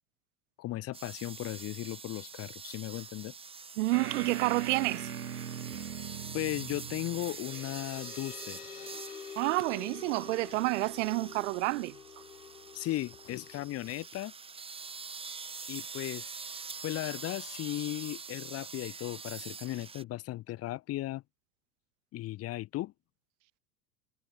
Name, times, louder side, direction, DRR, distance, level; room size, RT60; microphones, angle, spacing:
voice 1, 0.6-3.3 6.3-8.6 12.7-14.3 15.7-16.3 16.8-21.2 22.1-22.9, left 16 dB, 30° left, 1.3 m, -36 dB
sound 1, 0.9-20.0, right 5 dB, 10° right, 1.3 m, -45 dB
voice 2, 3.8-5.1 9.4-12.0, right 22 dB, 50° right, 1.2 m, -29 dB
sound 2, 3.9-8.2, right 8 dB, 75° right, 2.9 m, -41 dB
sound 3, 7.0-14.1, left 7 dB, 75° left, 4.9 m, -48 dB
figure-of-eight pair, 80°, 46 cm